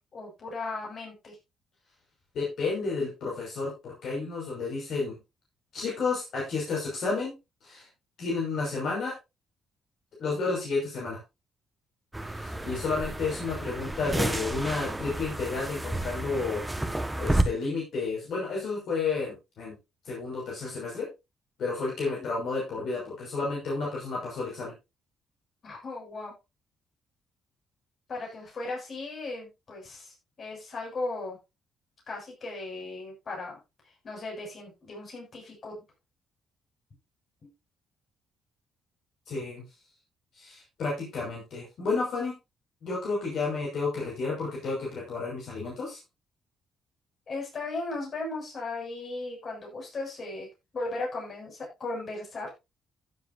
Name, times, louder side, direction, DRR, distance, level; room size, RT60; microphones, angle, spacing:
voice 1, 0.1-1.4 22.0-22.3 25.6-26.3 28.1-31.4 32.1-33.6 34.0-35.8 37.4-37.5 47.3-50.5 50.7-52.5, left 2 dB, 50° left, -1 dB, 7.2 m, -37 dB
voice 2, 2.3-5.2 5.7-7.3 7.6-7.9 8.2-9.1 10.2-11.2 12.3-16.6 17.2-19.7 20.0-21.1 21.6-24.7 39.3-39.6 40.3-42.3 42.8-46.0, left 4 dB, 70° left, -3 dB, 6.1 m, -31 dB
sound 1, 12.1-17.4, right 1 dB, 10° right, 1.6 m, -31 dB
15.5 x 7.8 x 2.8 m, 0.24 s
cardioid pair, 90°, 0 cm